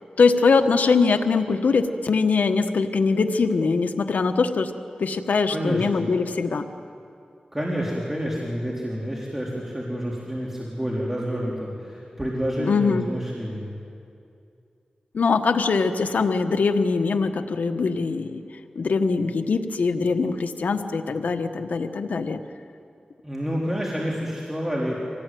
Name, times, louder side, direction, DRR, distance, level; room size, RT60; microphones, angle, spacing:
voice 1, 0.2-4.7 5.0-6.7 12.6-13.1 15.1-18.4 18.7-22.4, left 4 dB, 85° left, 7 dB, 1.2 m, -22 dB
voice 2, 5.5-6.1 7.5-13.8 23.2-25.0, equal, 15° right, -4 dB, 4.0 m, -28 dB
25.0 x 18.5 x 9.3 m, 2.5 s
cardioid pair, 55°, 3 cm